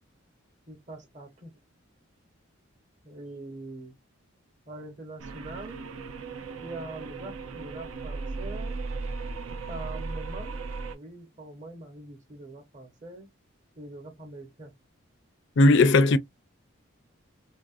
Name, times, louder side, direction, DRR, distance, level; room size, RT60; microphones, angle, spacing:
voice 1, 0.7-1.5 3.0-3.9 4.7-5.8 6.6-8.8 9.7-10.6 10.9-13.3 13.8-14.7, right 2 dB, 35° right, 1.1 m, -43 dB
sound 1, 5.2-11.0, right 3 dB, 85° right, 0.5 m, -36 dB
voice 2, 15.6-16.2, left 2 dB, 60° left, 0.4 m, -17 dB
2.8 x 2.5 x 2.4 m
head